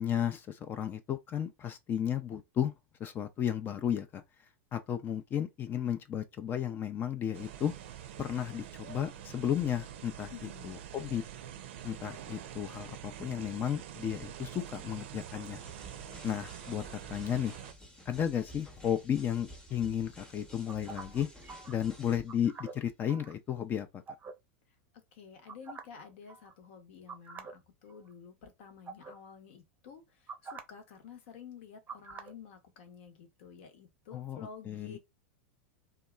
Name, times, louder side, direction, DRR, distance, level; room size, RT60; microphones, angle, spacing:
voice 1, 0.0-2.7 3.0-4.2 4.7-7.7 8.2-10.3 10.6-11.2 11.8-15.6 16.2-16.8 17.1-17.5 18.1-21.3 21.7-24.0 34.1-35.0, left 9 dB, 30° left, 0.4 m, -33 dB
sound 1, 7.3-17.7, right 10 dB, 65° right, 0.5 m, -46 dB
voice 2, 10.3-10.8 24.9-35.0, left 6 dB, 65° left, 0.9 m, -51 dB
sound 2, 15.6-22.5, equal, 10° left, 0.8 m, -52 dB
sound 3, 20.7-21.7 22.3-23.3 24.1-24.3 25.5-26.0 26.3-26.5 27.1-27.5 27.9-28.1 28.9-29.1 30.3-30.6 31.9-32.3, right 5 dB, 25° right, 0.6 m, -45 dB
2.7 x 2.2 x 2.3 m
hypercardioid pair, 100°, 7 cm